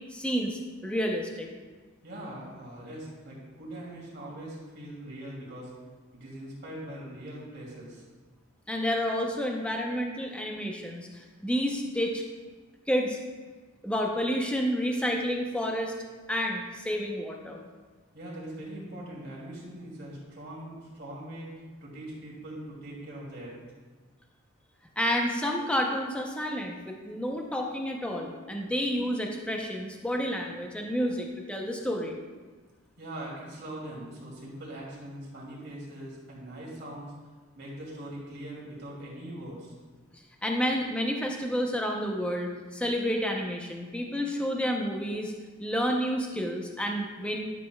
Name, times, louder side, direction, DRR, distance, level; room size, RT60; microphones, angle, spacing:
voice 1, 0.1-1.5 8.7-12.2 12.9-13.2 13.8-15.9 16.3-17.6 25.0-32.2 40.4-45.3 45.6-47.5, equal, 5° left, 1 dB, 0.6 m, -30 dB
voice 2, 2.0-5.7 6.1-8.0 18.1-23.5 33.0-37.1 37.5-39.7, right 1 dB, 55° right, -4 dB, 2.5 m, -41 dB
12.0 x 7.5 x 2.3 m, 1.4 s
head